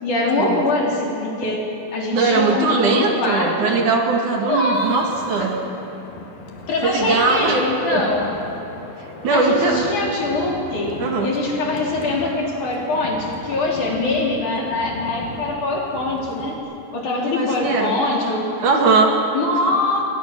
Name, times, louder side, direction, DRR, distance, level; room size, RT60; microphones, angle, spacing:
voice 1, 0.0-1.6 1.9-3.8 4.4-5.1 5.4-5.6 6.7-8.3 9.3-16.6 16.9-18.5 19.3-20.0, left 2 dB, 60° left, -2 dB, 5.2 m, -23 dB
voice 2, 2.1-5.6 6.8-7.6 7.9-8.0 9.2-9.9 11.0-11.3 17.3-17.9 18.6-19.2, right 4 dB, 60° right, 1 dB, 3.5 m, -19 dB
Wind, 4.7-16.6, left 3 dB, 75° left, 3.7 m, -38 dB
29.0 x 23.5 x 6.1 m, 2.8 s
omnidirectional pair, 4.0 m